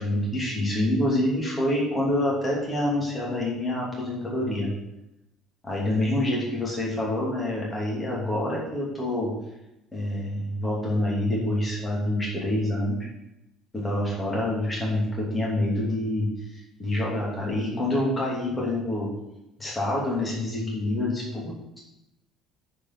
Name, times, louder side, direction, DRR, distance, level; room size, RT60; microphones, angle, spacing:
voice 1, 0.0-4.7 5.6-9.3 9.9-13.0 13.7-16.3 16.5-19.1 19.6-21.8, left 1 dB, 10° left, -5 dB, 2.8 m, -27 dB
9.4 x 4.8 x 6.1 m, 0.90 s
cardioid pair, 165°, 0 cm